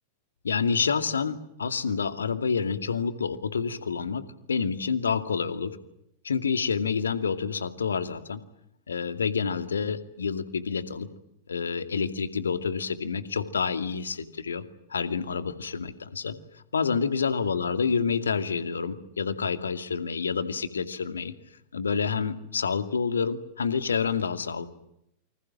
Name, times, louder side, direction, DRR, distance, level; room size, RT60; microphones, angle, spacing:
voice 1, 0.4-5.8 6.2-8.4 8.9-11.1 11.5-14.6 14.9-16.4 16.7-21.3 21.7-24.7, left 5 dB, 70° left, 11 dB, 2.3 m, -28 dB
28.5 x 26.0 x 7.6 m, 0.79 s
figure-of-eight pair, 90°, 0 cm